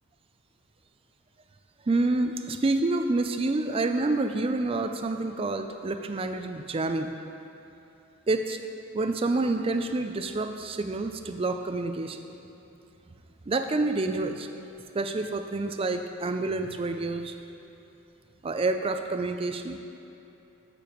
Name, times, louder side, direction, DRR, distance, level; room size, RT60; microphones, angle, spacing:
voice 1, 1.9-7.1 8.3-8.6 8.9-12.2 13.5-14.5 14.9-17.4 18.4-19.8, right 2 dB, 25° right, 7 dB, 0.4 m, -28 dB
14.0 x 6.7 x 3.0 m, 2.9 s
head